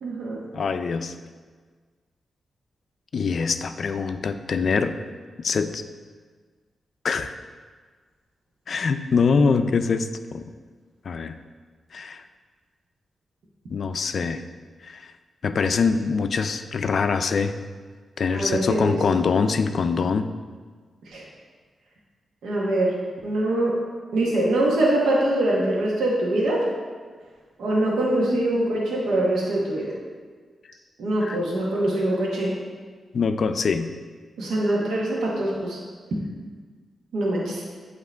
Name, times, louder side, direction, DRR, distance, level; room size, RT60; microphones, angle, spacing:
voice 1, 0.0-0.4 18.3-19.0 21.1-21.2 22.4-22.9 23.2-23.8 24.1-26.7 27.6-29.9 31.0-32.5 34.4-35.8 37.1-37.6, right 1 dB, 90° right, -3 dB, 1.1 m, -23 dB
voice 2, 0.5-1.1 3.1-5.0 5.4-5.8 7.0-7.3 8.7-10.5 11.0-11.4 11.9-12.2 13.7-14.4 14.8-15.1 15.4-17.5 18.2-20.3 31.2-31.4 33.1-33.9, left 5 dB, 65° left, 9 dB, 0.3 m, -24 dB
8.2 x 2.9 x 4.4 m, 1.5 s
cardioid pair, 65°, 0 cm